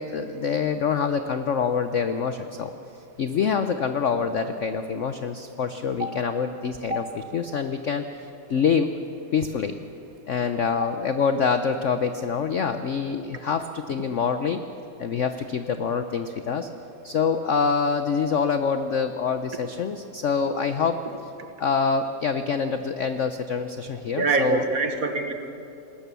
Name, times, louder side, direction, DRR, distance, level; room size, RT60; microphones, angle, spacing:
voice 1, 0.0-2.7 3.2-8.9 9.3-9.8 10.3-14.6 15.0-16.7 17.0-21.0 21.6-24.6, left 6 dB, 70° left, 9 dB, 0.7 m, -26 dB
voice 2, 24.2-25.3, right 3 dB, 50° right, 7 dB, 1.5 m, -24 dB
20.0 x 19.5 x 6.9 m, 2.7 s
omnidirectional pair, 2.1 m